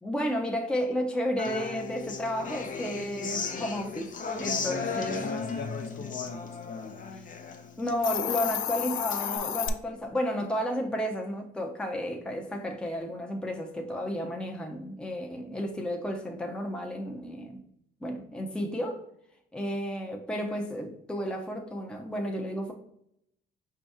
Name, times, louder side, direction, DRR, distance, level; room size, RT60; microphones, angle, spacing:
voice 1, 0.0-4.1 4.4-5.2 7.8-17.6 18.0-19.0 19.5-22.7, equal, 5° left, 2 dB, 0.7 m, -32 dB
Human voice / Acoustic guitar, 1.4-9.4, left 5 dB, 40° left, 0.6 m, -36 dB
voice 2, 4.4-7.0, left 4 dB, 55° left, 3 dB, 1.0 m, -39 dB
Hiss, 7.9-9.7, left 10 dB, 80° left, 0.4 m, -31 dB
5.1 x 2.8 x 3.5 m, 0.74 s
cardioid pair, 90°, 20 cm